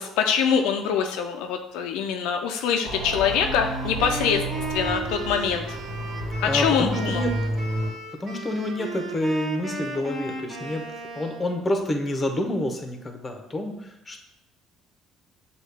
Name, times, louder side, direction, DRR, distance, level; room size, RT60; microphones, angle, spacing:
voice 1, 0.0-4.4 4.7-5.8 6.4-7.3, left 7 dB, 80° left, 4 dB, 0.3 m, -24 dB
Wind instrument woodwind instrument, 2.8-11.6, right 2 dB, 40° right, 1.4 m, -35 dB
sound 1, 2.8-7.9, right 1 dB, 60° right, 1.4 m, -31 dB
voice 2, 6.4-7.3 8.2-10.8 11.2-14.3, left 1 dB, 20° left, 4 dB, 0.8 m, -28 dB
6.3 x 2.3 x 3.5 m, 0.84 s
supercardioid pair, 85°, 0 cm